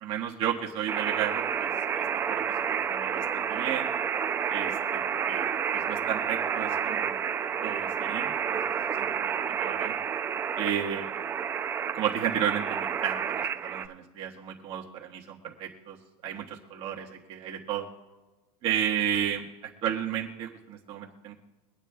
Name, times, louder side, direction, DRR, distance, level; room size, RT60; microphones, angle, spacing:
voice 1, 0.0-3.9 4.5-7.2 7.6-9.9 10.6-11.1 11.9-16.0 16.2-17.9 18.6-21.3, right 9 dB, 30° right, -2 dB, 1.4 m, -33 dB
sound 1, 0.9-13.9, right 7 dB, 15° right, 0.4 m, -30 dB
24.0 x 9.0 x 2.3 m, 1.2 s
supercardioid pair, 160°, 18 cm